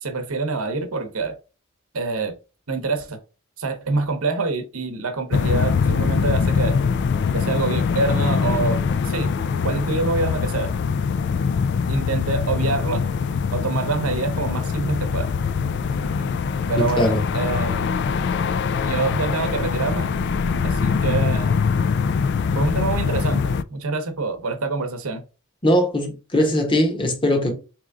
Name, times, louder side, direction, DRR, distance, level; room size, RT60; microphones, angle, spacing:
voice 1, 0.0-1.4 1.9-2.3 2.7-3.2 3.6-6.8 7.3-9.3 9.6-10.7 11.9-13.1 13.5-15.3 16.7-17.9 18.8-20.1 20.6-21.5 22.5-25.2, right 3 dB, 85° right, 0.8 m, -26 dB
sound 1, 5.3-23.6, left 5 dB, 55° left, 0.3 m, -23 dB
voice 2, 16.8-17.2 25.6-27.6, left 1 dB, 25° left, 1.1 m, -20 dB
3.7 x 3.1 x 3.5 m
head